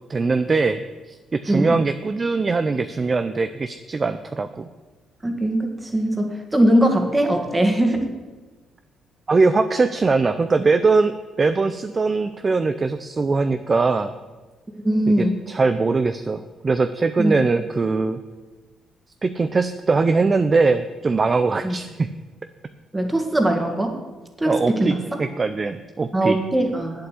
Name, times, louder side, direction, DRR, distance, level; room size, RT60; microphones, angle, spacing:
voice 1, 0.1-4.7 9.3-14.1 15.1-18.2 19.2-22.1 24.5-26.4, right 4 dB, 30° right, 10 dB, 0.5 m, -21 dB
voice 2, 1.5-1.8 5.2-8.1 14.8-15.3 17.2-17.4 21.6-21.7 22.9-24.0 24.4-25.0 26.1-27.1, right 1 dB, 15° right, 4 dB, 1.9 m, -20 dB
8.6 x 7.6 x 8.3 m, 1.3 s
cardioid pair, 90°, 0 cm